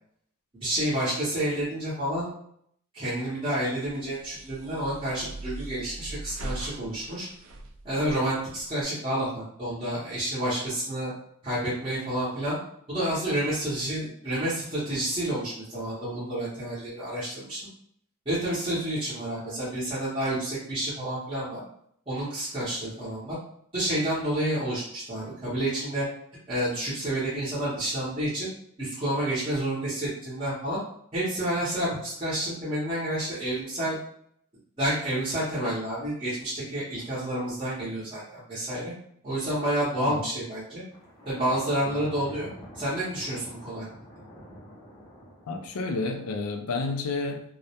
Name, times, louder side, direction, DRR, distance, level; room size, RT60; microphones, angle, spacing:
voice 1, 0.6-2.3 2.9-7.3 7.8-11.1 11.4-12.6 12.9-17.7 18.3-21.6 22.1-23.4 23.7-26.1 26.5-28.5 28.8-30.8 31.1-34.0 34.8-38.9 39.2-40.8 41.3-42.5 42.7-43.9, right 1 dB, 25° right, -11 dB, 0.7 m, -29 dB
sound 1, 3.9-8.8, right 2 dB, 65° right, 0.3 m, -41 dB
Thunder, 40.9-46.2, equal, 15° left, 0.4 m, -46 dB
voice 2, 45.5-47.4, left 3 dB, 80° left, 6 dB, 0.4 m, -30 dB
2.2 x 2.0 x 2.8 m, 0.68 s
head